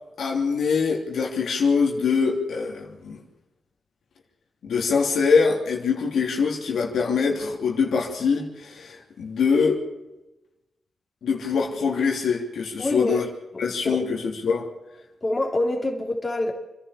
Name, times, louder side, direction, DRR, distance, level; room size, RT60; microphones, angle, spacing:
voice 1, 0.2-3.2 4.6-9.8 11.2-13.2 13.6-14.7, left 5 dB, 80° left, 3.0 m, -23 dB
voice 2, 12.8-13.2 13.5-14.0 15.2-16.5, left 2 dB, 35° left, 3.3 m, -26 dB
28.0 x 11.0 x 8.4 m
cardioid pair, 55°, 0 cm